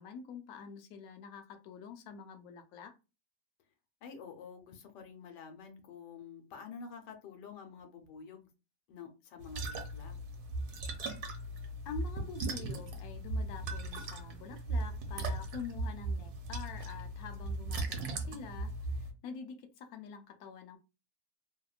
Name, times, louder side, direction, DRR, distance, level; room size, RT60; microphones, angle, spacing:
voice 1, 0.0-3.0 11.9-20.8, left 6 dB, 70° left, 0.9 m, -46 dB
voice 2, 4.0-8.5 8.9-10.1, left 6 dB, 90° left, 1.2 m, -49 dB
sound 1, 9.4-19.1, right 2 dB, 75° right, 1.1 m, -38 dB
2.8 x 2.1 x 2.3 m
omnidirectional pair, 1.8 m